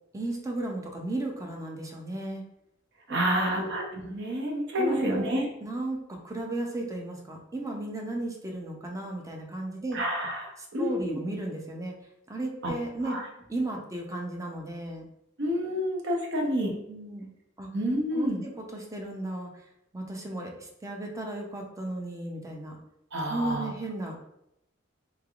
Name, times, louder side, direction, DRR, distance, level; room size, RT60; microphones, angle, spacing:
voice 1, 0.1-2.4 3.1-3.7 4.8-10.0 10.8-11.9 12.3-13.2 13.5-15.1 16.9-17.3 17.6-17.7 18.1-19.6 19.9-22.8 23.3-24.2, right 2 dB, 15° right, 1 dB, 0.5 m, -35 dB
voice 2, 3.1-5.5 9.9-11.2 12.6-12.7 13.0-13.2 15.4-16.7 17.7-18.4 23.1-23.7, equal, 60° right, 0 dB, 0.8 m, -29 dB
3.6 x 3.3 x 2.4 m, 0.81 s
head